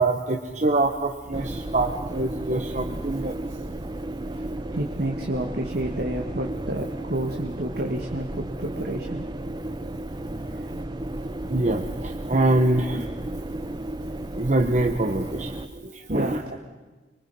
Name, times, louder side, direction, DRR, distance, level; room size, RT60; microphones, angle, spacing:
voice 1, 0.0-3.4 11.5-13.0 14.4-16.4, right 2 dB, 45° right, 4 dB, 1.2 m, -24 dB
sound 1, 1.3-15.7, right 1 dB, 25° right, 0.8 m, -33 dB
voice 2, 4.7-9.3 16.1-16.6, right 1 dB, 60° right, 3 dB, 1.7 m, -30 dB
25.5 x 23.0 x 5.5 m, 1.2 s
head